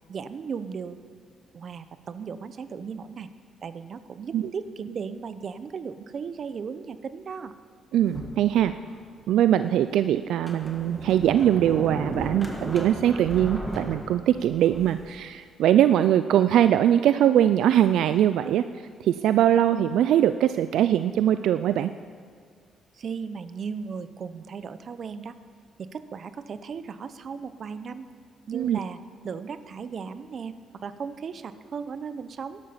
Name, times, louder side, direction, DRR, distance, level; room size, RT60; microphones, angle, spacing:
voice 1, 0.1-1.1 1.5-3.3 3.6-7.5 22.9-25.4 25.8-28.1 28.5-29.0 29.2-32.6, right 6 dB, 50° right, 12 dB, 0.7 m, -36 dB
voice 2, 7.9-8.7 9.3-18.6 19.0-21.9 28.5-28.8, right 11 dB, 80° right, 11 dB, 0.3 m, -21 dB
Sliding door, 8.1-9.0 9.6-9.7 10.3-15.1, equal, 5° right, 2.0 m, -36 dB
12.0 x 12.0 x 5.7 m, 2.1 s
cardioid pair, 90°, 0 cm